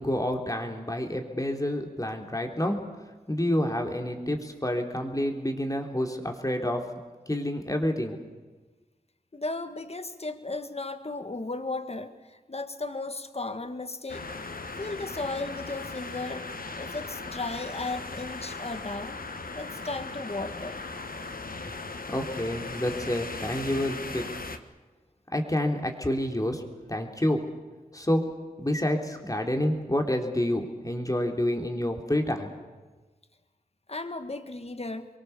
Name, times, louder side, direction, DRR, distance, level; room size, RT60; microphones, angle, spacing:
voice 1, 0.0-2.8 3.3-6.8 7.3-8.2 22.1-24.3 25.3-26.6 26.9-27.4 27.9-28.2 28.6-32.5, left 1 dB, 25° left, 3 dB, 3.4 m, -28 dB
voice 2, 9.3-14.2 14.8-16.5 16.8-19.2 19.5-20.8 33.9-35.1, left 2 dB, 45° left, 9 dB, 1.7 m, -35 dB
sound 1, 14.1-24.6, left 3 dB, 70° left, 1.3 m, -38 dB
28.5 x 23.0 x 7.0 m, 1.2 s
wide cardioid pair, 65°, 15 cm